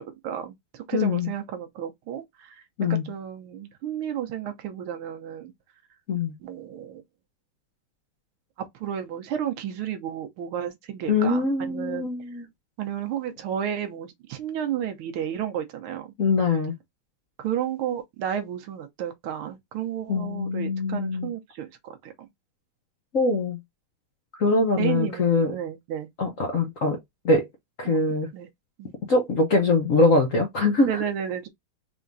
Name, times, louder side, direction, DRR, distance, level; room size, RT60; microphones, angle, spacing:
voice 1, 0.0-2.6 2.9-5.5 6.4-7.0 8.7-12.1 12.8-16.1 17.4-22.3 24.8-26.1 27.8-28.0 28.3-28.5 28.8-28.9 30.8-31.5, right 9 dB, 75° right, 1.7 m, -32 dB
voice 2, 0.9-1.3 2.8-3.1 6.1-6.3 11.1-12.5 16.2-16.7 20.1-21.3 23.1-23.6 24.4-25.5 26.2-27.0 27.2-27.5 27.8-28.3 29.1-31.0, left 3 dB, 55° left, 0.9 m, -23 dB
4.9 x 3.4 x 2.6 m
omnidirectional pair, 2.4 m